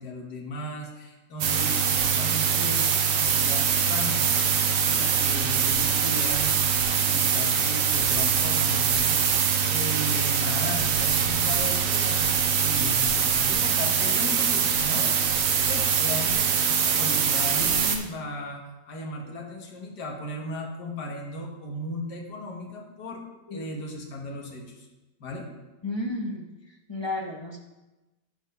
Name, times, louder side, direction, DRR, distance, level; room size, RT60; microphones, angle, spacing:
voice 1, 0.0-2.8 3.1-4.5 4.8-6.6 6.9-15.1 15.6-16.5 16.8-23.2 23.5-24.9 25.2-25.5, left 1 dB, 70° left, 0 dB, 1.9 m, -36 dB
sound 1, 1.4-18.0, right 7 dB, 85° right, 1.5 m, -23 dB
voice 2, 25.8-27.6, left 2 dB, 30° left, 0 dB, 0.5 m, -33 dB
10.0 x 4.2 x 5.5 m, 1.1 s
omnidirectional pair, 1.9 m